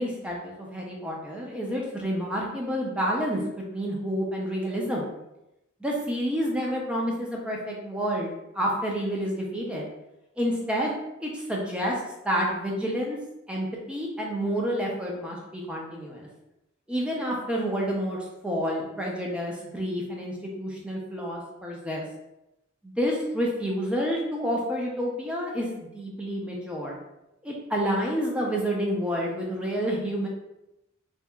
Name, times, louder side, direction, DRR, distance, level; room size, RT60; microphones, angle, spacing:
voice 1, 0.0-5.1 5.8-9.9 10.4-12.0 12.2-13.2 13.5-16.3 16.9-22.0 22.8-25.7 25.9-27.0 27.4-30.3, equal, 5° right, -2 dB, 0.4 m, -29 dB
2.7 x 2.3 x 2.2 m, 0.89 s
head